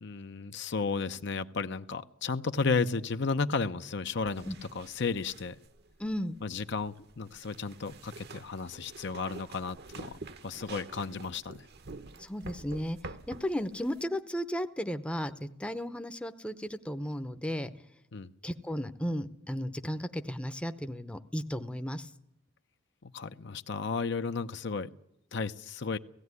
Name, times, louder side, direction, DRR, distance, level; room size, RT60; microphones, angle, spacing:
voice 1, 0.0-5.6 6.4-11.7 18.1-18.3 23.0-24.9 25.3-26.0, left 4 dB, 60° left, 10 dB, 0.7 m, -33 dB
sound 1, 4.2-14.0, right 3 dB, 55° right, 1.0 m, -48 dB
voice 2, 6.0-6.4 12.2-13.0 13.3-17.7 18.4-22.1, equal, 5° left, 9 dB, 0.7 m, -34 dB
16.5 x 16.0 x 9.6 m, 0.79 s
head